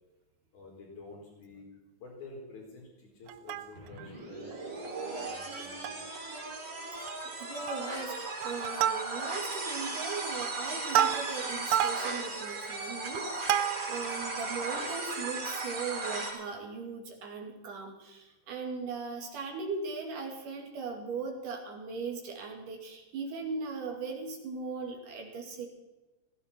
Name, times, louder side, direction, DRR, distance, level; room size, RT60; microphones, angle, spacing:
voice 1, 0.5-1.7 2.0-4.7 5.2-6.2, left 3 dB, 60° left, -1 dB, 5.9 m, -49 dB
Plucked string instrument, 3.3-4.1 4.5-4.6 4.8-5.1 5.5-6.2 6.5-6.6 6.9-7.3 7.7-8.0 8.4-9.5 10.0-14.1 14.6-14.7, right 10 dB, 85° right, 1.6 m, -31 dB
sound 1, 3.8-16.3, right 3 dB, 45° right, 4.8 m, -37 dB
voice 2, 7.0-25.7, right 4 dB, 65° right, 1 dB, 3.8 m, -39 dB
17.0 x 15.5 x 4.4 m, 1.1 s
omnidirectional pair, 4.0 m